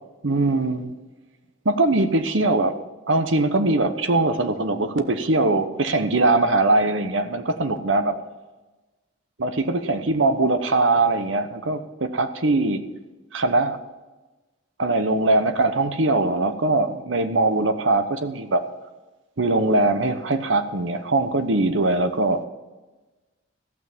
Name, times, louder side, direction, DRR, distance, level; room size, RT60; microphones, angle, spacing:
voice 1, 0.2-0.9 1.6-2.8 3.1-8.1 9.4-12.8 13.3-13.8 14.8-18.6 19.4-22.4, right 2 dB, 75° right, 9 dB, 1.0 m, -21 dB
14.5 x 6.1 x 7.3 m, 1.2 s
head